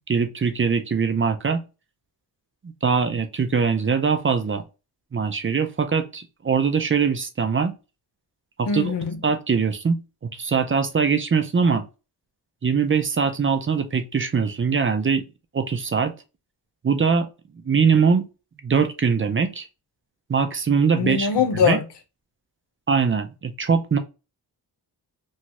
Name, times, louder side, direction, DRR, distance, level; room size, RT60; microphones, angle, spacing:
voice 1, 0.1-1.6 2.8-4.6 5.1-7.7 8.6-8.9 9.2-10.0 10.3-11.8 12.6-15.2 15.5-16.1 16.8-17.3 17.7-18.2 18.6-19.7 20.3-21.3 21.6-21.8 22.9-24.0, right 5 dB, 30° right, 0.5 m, -22 dB
voice 2, 8.7-9.2 21.0-21.8, left 6 dB, 90° left, 0.9 m, -22 dB
3.1 x 2.3 x 2.8 m
cardioid pair, 85°, 40 cm